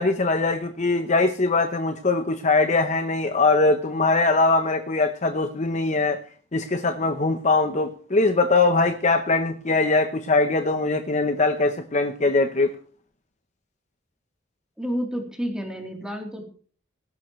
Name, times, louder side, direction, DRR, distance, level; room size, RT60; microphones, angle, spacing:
voice 1, 0.0-6.2 6.5-12.7, left 3 dB, 35° left, 7 dB, 0.9 m, -22 dB
voice 2, 14.8-16.4, equal, 5° right, 1 dB, 3.4 m, -30 dB
19.0 x 11.5 x 3.2 m, 0.42 s
head